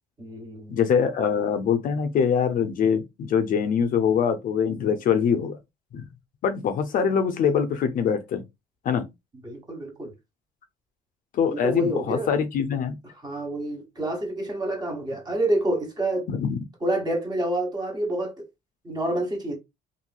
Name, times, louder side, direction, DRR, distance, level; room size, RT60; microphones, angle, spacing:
voice 1, 0.2-0.8 9.4-10.1 11.5-12.3 13.2-16.2 16.8-18.4 18.8-19.6, right 1 dB, 25° right, 1.2 m, -28 dB
voice 2, 0.7-5.6 5.9-6.1 6.4-8.4 8.8-9.1 11.3-13.0 16.3-16.6, left 7 dB, 55° left, 0.5 m, -23 dB
2.9 x 2.6 x 2.2 m
cardioid pair, 110°, 17 cm